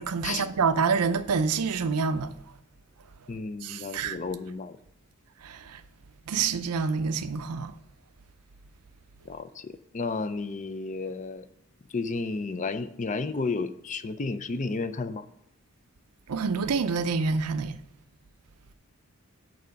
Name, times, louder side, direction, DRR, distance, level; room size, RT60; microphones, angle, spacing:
voice 1, 0.1-2.3 3.6-4.2 5.4-5.8 6.3-7.7 16.3-17.8, right 5 dB, 85° right, 0.5 m, -27 dB
voice 2, 3.3-4.8 9.2-11.5 11.9-15.3, left 3 dB, 35° left, 0.4 m, -32 dB
6.9 x 6.1 x 5.2 m
head